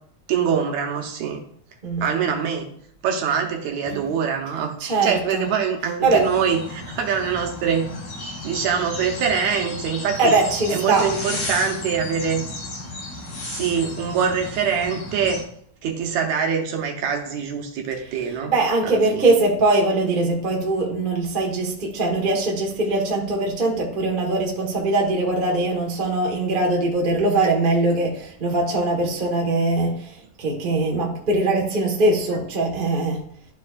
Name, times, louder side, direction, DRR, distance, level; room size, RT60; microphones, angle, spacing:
voice 1, 0.3-1.4 2.0-2.7 3.0-7.9 8.2-10.3 10.7-12.5 13.4-15.4 15.8-18.5 18.8-19.2, right 7 dB, 70° right, 3 dB, 2.1 m, -24 dB
voice 2, 4.8-5.4 6.0-6.3 10.2-11.1 18.5-33.3, right 2 dB, 35° right, -1 dB, 0.7 m, -21 dB
sound 1, 6.0-15.4, left 2 dB, 80° left, 2.8 m, -34 dB
12.5 x 4.6 x 2.5 m, 0.64 s
omnidirectional pair, 3.5 m